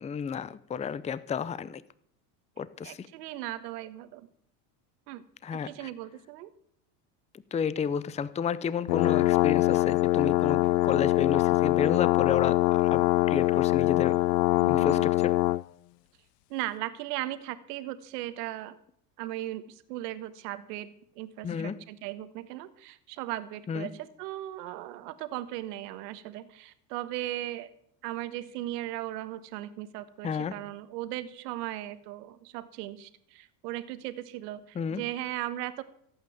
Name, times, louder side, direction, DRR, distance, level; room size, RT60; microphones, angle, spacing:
voice 1, 0.0-1.8 2.6-3.1 5.4-5.9 7.5-14.2 14.7-15.3 21.4-21.8 23.7-23.9 30.2-30.6 34.7-35.0, left 6 dB, 15° left, 18 dB, 0.5 m, -31 dB
voice 2, 2.8-4.3 5.1-5.2 5.6-6.5 14.6-15.1 16.5-18.8 19.2-27.7 28.0-35.8, right 14 dB, 80° right, 13 dB, 1.4 m, -37 dB
sound 1, 8.9-15.6, left 17 dB, 85° left, 0.6 m, -23 dB
15.5 x 8.8 x 7.3 m, 0.70 s
supercardioid pair, 100°, 47 cm